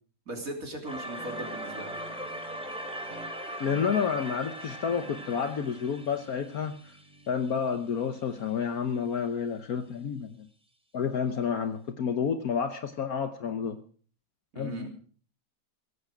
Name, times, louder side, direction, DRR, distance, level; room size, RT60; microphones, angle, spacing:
voice 1, 0.3-1.9 14.5-14.9, right 1 dB, 50° right, 3 dB, 3.5 m, -38 dB
sound 1, 0.8-7.7, right 1 dB, 5° right, 3.2 m, -40 dB
Guitar, 1.1-8.3, right 4 dB, 80° right, 2.4 m, -51 dB
voice 2, 3.6-6.8 7.3-10.5 10.9-13.8 14.6-14.9, left 6 dB, 60° left, 9 dB, 1.4 m, -30 dB
16.5 x 15.0 x 5.0 m, 0.43 s
omnidirectional pair, 1.8 m